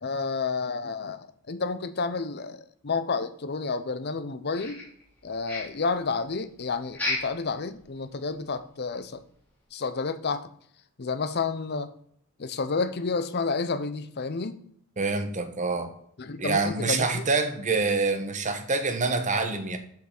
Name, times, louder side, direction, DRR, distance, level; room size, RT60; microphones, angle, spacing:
voice 1, 0.0-4.8 5.2-9.2 9.7-10.5 11.0-11.9 12.4-14.6 16.2-17.2, left 4 dB, 50° left, 11 dB, 0.7 m, -30 dB
sound 1, 4.5-5.2 5.4-5.9 6.9-7.4 7.8-7.9 8.3-8.4 8.9-9.0, left 2 dB, 10° left, 3.3 m, -32 dB
voice 2, 15.0-15.9 16.4-19.8, right 3 dB, 35° right, 7 dB, 1.2 m, -26 dB
7.0 x 5.9 x 5.9 m, 0.65 s
head